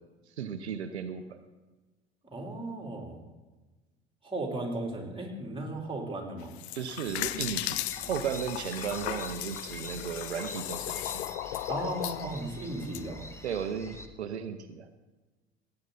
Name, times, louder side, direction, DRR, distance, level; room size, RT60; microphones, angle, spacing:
voice 1, 0.4-1.4 6.8-11.3 13.4-14.9, right 7 dB, 90° right, 9 dB, 0.7 m, -35 dB
voice 2, 2.3-3.2 4.2-6.6 11.7-13.3, right 2 dB, 15° right, -1 dB, 3.7 m, -36 dB
sound 1, 6.4-13.0, left 15 dB, 75° left, 0.5 m, -36 dB
sound 2, 7.1-14.1, left 1 dB, 10° left, 1.4 m, -46 dB
18.0 x 9.8 x 4.1 m, 1.2 s
hypercardioid pair, 65°, 32 cm